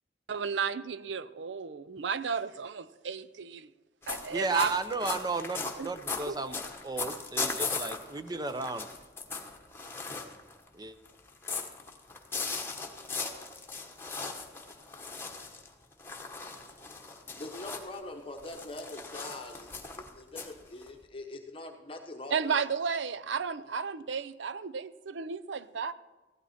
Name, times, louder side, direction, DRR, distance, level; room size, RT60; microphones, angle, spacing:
voice 1, 0.3-3.7 4.1-4.7 5.8-5.9 6.3-6.4 22.3-25.9, right 6 dB, 80° right, 15 dB, 0.5 m, -33 dB
sound 1, 4.0-10.7 11.0-18.0 18.4-21.0, left 4 dB, 15° left, 1.2 m, -38 dB
voice 2, 4.3-6.6 6.8-8.9 10.7-10.9, right 3 dB, 20° right, 10 dB, 0.6 m, -34 dB
voice 3, 17.3-19.7 20.0-22.6, left 2 dB, 30° left, 4 dB, 0.9 m, -43 dB
15.5 x 12.0 x 4.2 m, 1.2 s
head